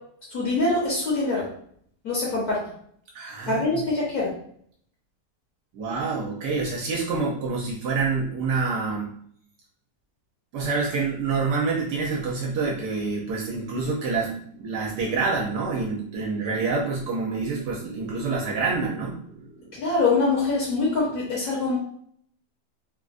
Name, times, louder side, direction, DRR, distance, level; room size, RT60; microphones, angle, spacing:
voice 1, 0.3-1.5 2.0-2.7 3.5-4.3 19.8-21.8, left 3 dB, 65° left, -5 dB, 1.3 m, -24 dB
voice 2, 3.1-3.6 5.7-9.2 10.5-19.8, right 4 dB, 75° right, -2 dB, 1.2 m, -27 dB
3.4 x 2.4 x 2.4 m, 0.62 s
omnidirectional pair, 1.9 m